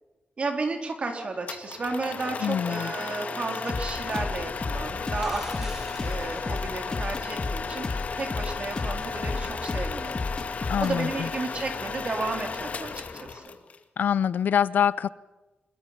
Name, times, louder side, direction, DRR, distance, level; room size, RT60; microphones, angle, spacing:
voice 1, 0.4-10.3 10.8-13.6, right 3 dB, 40° right, 3 dB, 3.7 m, -33 dB
sound 1, 1.5-13.8, left 5 dB, 50° left, 1.8 m, -35 dB
voice 2, 2.4-2.9 10.7-11.3 14.0-15.1, left 8 dB, 70° left, 18 dB, 0.6 m, -25 dB
sound 2, 3.7-13.3, left 3 dB, 25° left, 2.1 m, -34 dB
sound 3, 5.1-7.4 11.6-11.7, right 1 dB, 15° right, 2.7 m, -47 dB
25.5 x 22.0 x 5.9 m, 1.1 s
wide cardioid pair, 165°, 3 cm